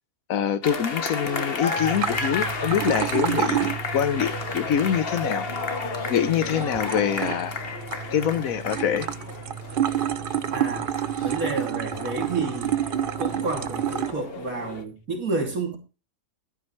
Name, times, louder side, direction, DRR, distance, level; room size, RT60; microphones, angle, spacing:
voice 1, 0.3-5.5 6.1-7.6 8.1-9.1, left 8 dB, 75° left, 1.3 m, -25 dB
sound 1, 0.6-14.8, left 4 dB, 45° left, 1.4 m, -32 dB
sound 2, 1.8-14.1, right 10 dB, 55° right, 0.6 m, -30 dB
voice 2, 10.5-11.0 11.2-12.8 13.2-15.8, right 3 dB, 80° right, 3.4 m, -30 dB
13.0 x 10.0 x 3.2 m
omnidirectional pair, 1.5 m